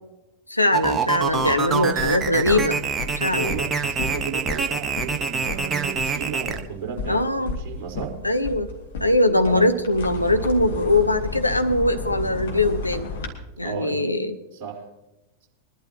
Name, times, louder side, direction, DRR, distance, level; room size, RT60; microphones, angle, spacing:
voice 1, 0.5-2.8 3.2-3.5 7.1-7.5 8.2-8.7 9.0-13.1 13.6-14.4, left 1 dB, 85° left, 7 dB, 0.9 m, -21 dB
sound 1, 0.7-6.6, right 5 dB, 20° right, 1.2 m, -25 dB
sound 2, 1.2-13.3, left 4 dB, 60° left, 2.2 m, -34 dB
voice 2, 3.2-7.2 7.6-8.2 9.4-9.7 13.6-14.1 14.5-14.9, right 7 dB, 40° right, -3 dB, 4.2 m, -34 dB
23.0 x 12.0 x 2.9 m, 1.0 s
figure-of-eight pair, 90°, 0 cm